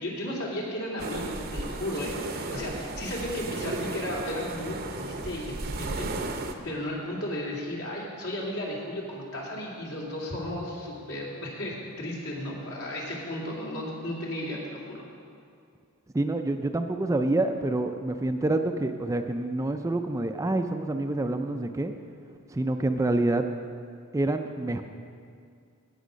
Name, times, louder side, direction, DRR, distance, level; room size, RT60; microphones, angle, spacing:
voice 1, 0.0-15.0, left 1 dB, 70° left, -3 dB, 2.6 m, -34 dB
sound 1, 1.0-6.5, right 2 dB, 45° right, 0.7 m, -34 dB
voice 2, 16.1-21.9 22.5-23.4 24.1-24.8, right 2 dB, 15° right, 6 dB, 0.3 m, -27 dB
16.5 x 6.4 x 5.1 m, 2.3 s
head